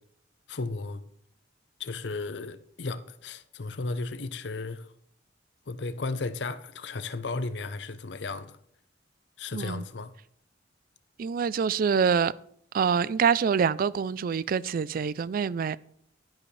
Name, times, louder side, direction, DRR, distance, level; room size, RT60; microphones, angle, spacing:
voice 1, 0.5-1.0 1.8-4.9 5.7-8.6 9.4-10.1, left 3 dB, 70° left, 0.7 m, -34 dB
voice 2, 9.5-9.8 11.2-12.3 12.7-15.8, right 6 dB, 50° right, 0.3 m, -25 dB
11.0 x 10.5 x 3.3 m
head